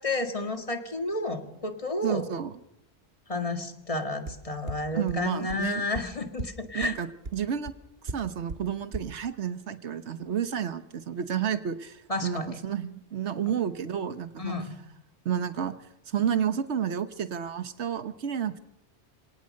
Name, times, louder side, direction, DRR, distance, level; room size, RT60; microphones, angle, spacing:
voice 1, 0.0-2.3 3.3-7.0 12.1-12.6 14.4-14.8, left 2 dB, 30° left, 5 dB, 1.9 m, -31 dB
voice 2, 2.0-2.5 4.9-5.8 6.7-7.7 8.0-14.5 15.2-15.7 16.1-18.6, right 8 dB, 80° right, 10 dB, 1.4 m, -31 dB
sound 1, 4.3-4.4 4.7-4.8 5.1-5.2 5.5-5.6 5.9-6.0 6.4-6.5 6.8-6.9 7.2-7.3 7.6-7.7 8.1-8.2 8.5-8.6 8.9-9.0, right 3 dB, 60° right, 2.0 m, -33 dB
28.0 x 18.0 x 6.5 m, 0.84 s
omnidirectional pair, 1.1 m